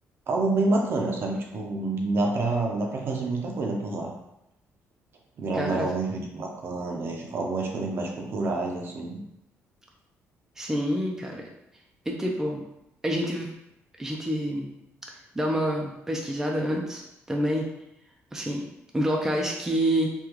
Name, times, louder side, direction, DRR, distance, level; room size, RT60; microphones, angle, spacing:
voice 1, 0.3-4.1 5.4-9.2, right 2 dB, 50° right, 1 dB, 0.6 m, -28 dB
voice 2, 5.5-5.9 10.6-11.5 12.1-12.7 13.0-13.5 14.0-14.7 15.4-17.7 18.3-18.6 18.9-20.1, equal, 10° right, 0 dB, 0.4 m, -27 dB
3.6 x 2.2 x 3.0 m, 0.84 s
cardioid pair, 125°, 5 cm